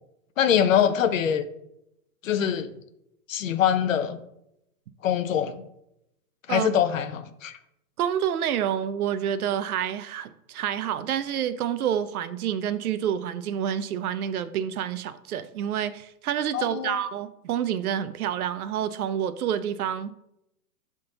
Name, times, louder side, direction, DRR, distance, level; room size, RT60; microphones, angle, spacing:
voice 1, 0.4-1.4 2.2-2.7 3.3-4.2 5.0-5.6 6.5-7.6 16.5-17.0, left 9 dB, 55° left, 0.6 m, -24 dB
voice 2, 8.0-20.1, right 9 dB, 70° right, 0.6 m, -28 dB
6.8 x 3.7 x 3.9 m
hypercardioid pair, 165°, 47 cm